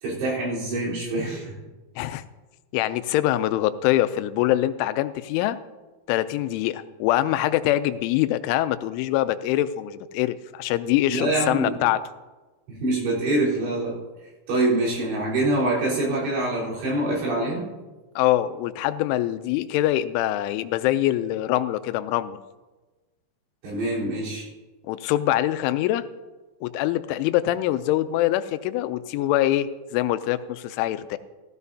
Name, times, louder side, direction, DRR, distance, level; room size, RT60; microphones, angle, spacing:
voice 1, 0.0-1.6 11.1-11.7 12.7-14.0 14.5-17.7 23.6-24.5, right 2 dB, 65° right, -7 dB, 6.0 m, -25 dB
voice 2, 2.7-5.6 6.1-12.0 18.2-22.4 24.9-26.1 26.6-31.2, left 14 dB, 90° left, 12 dB, 3.0 m, -24 dB
16.0 x 14.0 x 2.8 m, 1.2 s
omnidirectional pair, 5.4 m